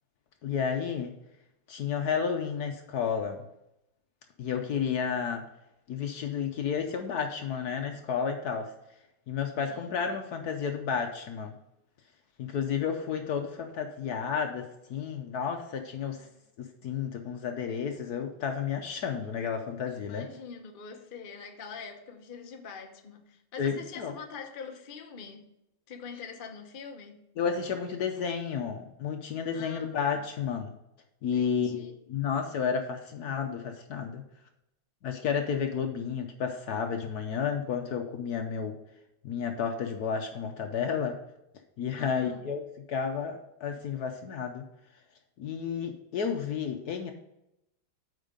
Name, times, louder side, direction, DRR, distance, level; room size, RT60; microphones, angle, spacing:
voice 1, 0.4-1.2 1.7-3.4 4.4-5.5 5.9-8.7 9.3-11.5 12.4-16.3 16.6-20.3 23.6-24.1 27.4-30.7 31.2-31.8 32.1-34.2 35.0-38.8 39.2-41.2 41.8-44.6 45.4-47.1, left 6 dB, 65° left, 1.1 m, -31 dB
voice 2, 16.1-16.4 19.9-25.5 25.9-27.2 29.5-30.2 31.3-32.0 42.0-42.5, left 5 dB, 45° left, 0.6 m, -44 dB
8.5 x 4.5 x 5.2 m
omnidirectional pair, 2.2 m